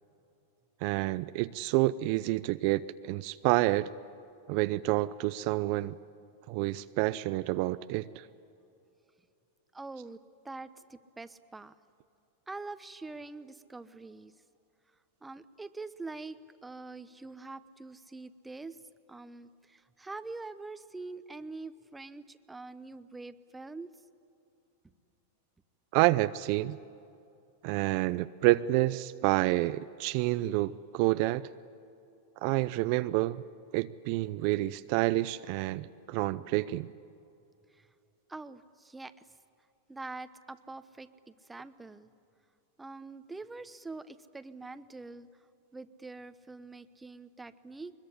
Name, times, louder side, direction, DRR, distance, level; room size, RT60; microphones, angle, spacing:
voice 1, 0.8-3.9 4.5-6.0 6.5-8.3 25.9-26.8 27.6-31.5 32.4-33.4 33.7-36.9, right 18 dB, 55° right, 13 dB, 0.5 m, -28 dB
voice 2, 9.7-11.8 12.5-14.3 15.2-18.8 19.1-23.9 37.7-37.9 38.3-39.3 39.9-42.1 42.8-45.3 45.7-47.9, right 3 dB, 10° right, 12 dB, 1.0 m, -44 dB
22.5 x 21.5 x 9.9 m, 2.7 s
hypercardioid pair, 110°, 0 cm